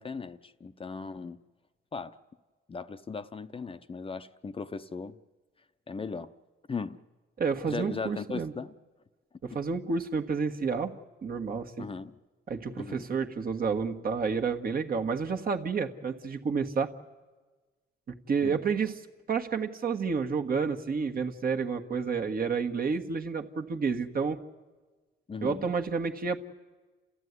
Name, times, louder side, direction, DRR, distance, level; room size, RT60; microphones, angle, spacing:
voice 1, 0.0-1.4 1.9-2.2 2.7-5.2 5.9-6.3 6.7-7.0 7.6-8.7 9.5-9.6 11.8-12.2 12.8-13.1 18.4-18.6 25.3-25.7, left 4 dB, 25° left, 0.7 m, -37 dB
voice 2, 7.4-8.5 9.4-11.0 11.2-11.8 12.5-16.9 18.1-19.0 19.3-24.4 25.4-26.4, right 5 dB, 50° right, 1.6 m, -30 dB
29.5 x 14.0 x 9.7 m
cardioid pair, 90°, 20 cm